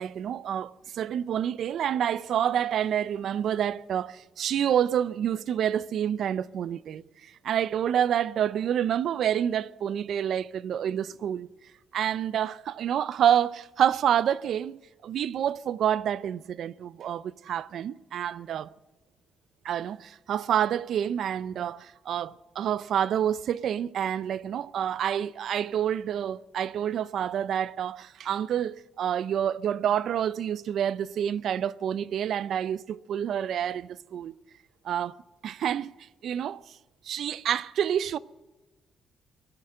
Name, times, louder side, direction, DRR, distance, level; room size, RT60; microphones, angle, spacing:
voice 1, 0.0-11.5 11.9-18.7 19.6-34.3 34.8-35.2 35.4-35.9 36.2-36.8 37.0-38.2, right 9 dB, 70° right, 0.5 m, -28 dB
19.0 x 8.6 x 7.7 m
cardioid pair, 90°, 0 cm